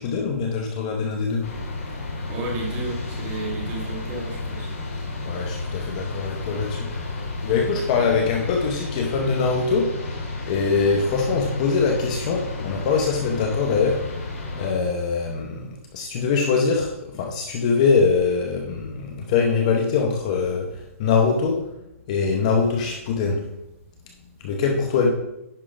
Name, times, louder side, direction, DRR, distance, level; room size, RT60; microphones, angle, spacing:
voice 1, 0.0-1.5 5.2-14.1 14.5-21.7 22.1-23.4 24.4-25.1, left 5 dB, 25° left, 2 dB, 0.7 m, -23 dB
sound 1, 1.4-14.7, left 2 dB, 75° left, 3.0 m, -32 dB
voice 2, 2.3-4.7, right 2 dB, 20° right, -1 dB, 1.7 m, -32 dB
10.0 x 3.7 x 4.9 m, 0.87 s
hypercardioid pair, 170°, 8 cm